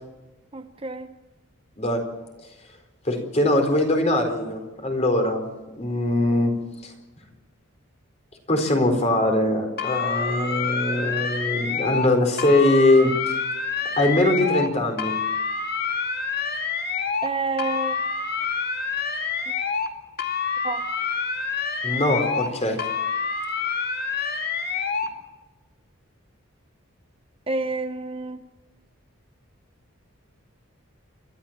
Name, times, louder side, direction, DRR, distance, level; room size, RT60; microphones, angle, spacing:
voice 1, 0.5-1.1 17.2-18.0 19.5-19.6 20.6-20.8 27.5-28.4, right 3 dB, 25° right, 8 dB, 0.8 m, -29 dB
voice 2, 3.0-5.5 5.7-6.5 6.8-6.9 8.5-13.1 14.0-15.1 21.8-22.8, left 1 dB, 30° left, 4 dB, 4.3 m, -21 dB
sound 1, 9.8-12.1 12.4-14.7 15.0-17.3 17.6-19.9 20.2-22.5 22.8-25.1, left 5 dB, 45° left, 2.3 m, -27 dB
29.5 x 13.5 x 7.4 m, 1.1 s
head